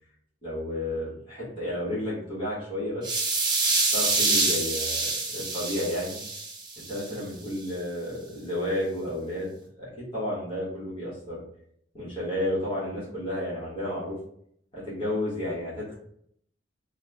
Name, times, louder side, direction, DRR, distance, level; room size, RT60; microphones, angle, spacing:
voice 1, 0.4-3.1 3.8-6.2 6.8-9.5 9.8-11.4 11.9-14.2 14.7-15.9, left 1 dB, 30° left, -9 dB, 1.5 m, -32 dB
sound 1, 3.0-7.1, right 3 dB, 25° right, 0.7 m, -26 dB
3.5 x 2.3 x 3.4 m, 0.69 s
head